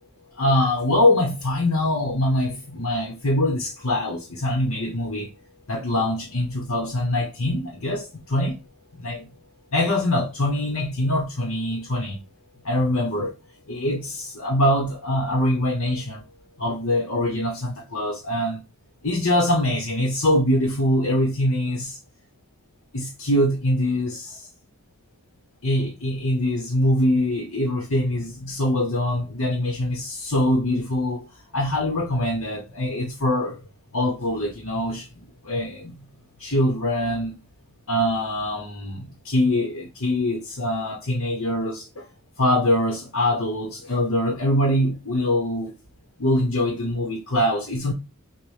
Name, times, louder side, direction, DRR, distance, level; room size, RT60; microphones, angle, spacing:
voice 1, 0.3-5.3 5.7-8.6 9.0-9.3 9.7-12.2 12.6-13.3 13.7-16.2 16.6-18.6 19.0-22.0 22.9-24.5 25.6-33.6 33.9-36.0 36.4-37.4 37.9-42.1 42.4-45.7 46.2-47.9, left 1 dB, 65° left, 1.3 m, -23 dB
5.9 x 2.5 x 3.4 m
head